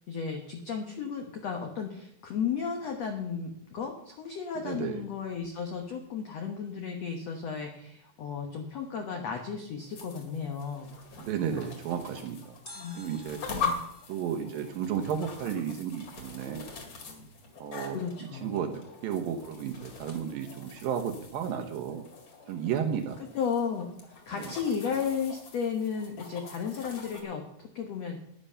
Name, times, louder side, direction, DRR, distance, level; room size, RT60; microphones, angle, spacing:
voice 1, 0.0-11.0 12.7-13.0 13.5-13.8 17.8-18.6 23.3-23.9 24.3-28.2, left 6 dB, 75° left, 3 dB, 1.5 m, -34 dB
voice 2, 4.6-5.0 11.2-12.6 13.0-13.4 14.1-16.7 17.6-18.0 18.4-22.1 22.5-23.2 24.4-24.5, right 8 dB, 70° right, 6 dB, 2.5 m, -33 dB
sound 1, 9.8-27.2, left 4 dB, 45° left, 2.8 m, -42 dB
sound 2, 12.7-15.7 16.0-16.1, left 1 dB, 30° left, 1.7 m, -52 dB
12.5 x 9.9 x 5.6 m, 0.71 s
omnidirectional pair, 4.7 m